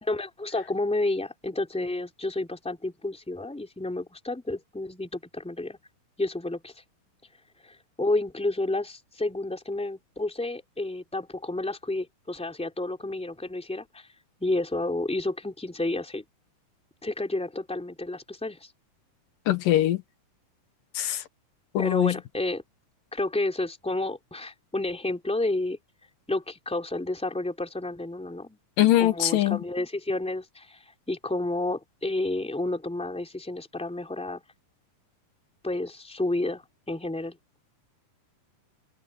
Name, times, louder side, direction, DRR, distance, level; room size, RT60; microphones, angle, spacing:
voice 1, 0.0-5.8 6.2-6.7 7.6-14.1 14.4-16.2 17.0-18.6 21.8-22.6 23.1-25.8 26.3-28.6 29.0-30.8 31.1-34.4 35.6-36.6 36.9-37.4, left 2 dB, ahead, 2.9 m, -30 dB
voice 2, 19.5-20.0 21.0-21.2 21.7-22.1 28.8-29.6, left 13 dB, 80° left, 2.8 m, -22 dB
open air
omnidirectional pair, 3.9 m